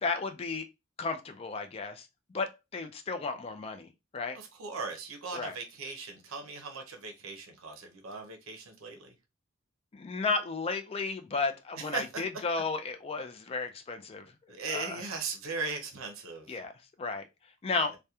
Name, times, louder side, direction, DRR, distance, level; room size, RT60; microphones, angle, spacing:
voice 1, 0.0-0.6 1.0-2.1 2.3-4.4 5.3-5.5 9.9-14.3 14.7-15.0 16.5-16.7 17.0-17.3 17.6-17.9, left 4 dB, 30° left, 0.3 m, -33 dB
voice 2, 4.3-9.1 11.8-12.0 14.5-16.6 17.9-18.0, right 4 dB, 85° right, 0.5 m, -38 dB
2.8 x 2.1 x 2.3 m
head